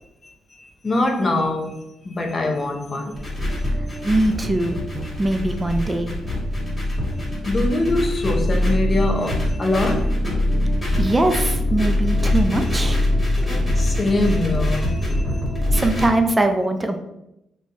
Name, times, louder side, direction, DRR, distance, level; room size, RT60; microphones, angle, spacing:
voice 1, 0.2-3.6 4.6-4.7 6.9-7.0 7.4-10.1 13.3-15.6, left 2 dB, 30° left, 0.6 m, -24 dB
sound 1, 3.1-16.1, left 1 dB, 15° left, 1.4 m, -23 dB
voice 2, 4.0-4.8 5.2-6.1 11.0-13.0 15.7-17.0, right 2 dB, 15° right, 0.3 m, -21 dB
3.2 x 2.2 x 3.9 m
cardioid pair, 100°, 0 cm